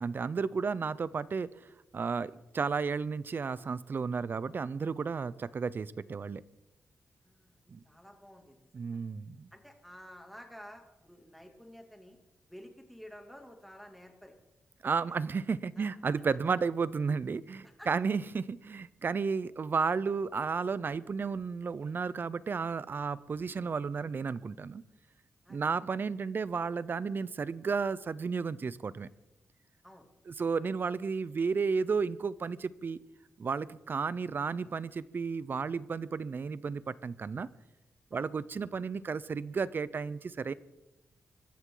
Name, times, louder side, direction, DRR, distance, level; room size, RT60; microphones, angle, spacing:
voice 1, 0.0-1.5 1.9-6.4 7.7-7.8 8.7-9.5 14.8-24.8 25.5-29.1 30.3-33.0 33.4-37.5 38.1-40.5, right 5 dB, 45° right, 18 dB, 0.6 m, -33 dB
voice 2, 7.2-7.6 7.8-9.0 9.5-12.2 12.5-14.3 15.1-15.2 15.8-15.9 17.6-17.9 25.4-25.6 29.8-30.1 38.1-38.3, equal, ahead, 3 dB, 2.7 m, -51 dB
23.5 x 13.5 x 3.9 m, 0.96 s
wide cardioid pair, 105°, 5 cm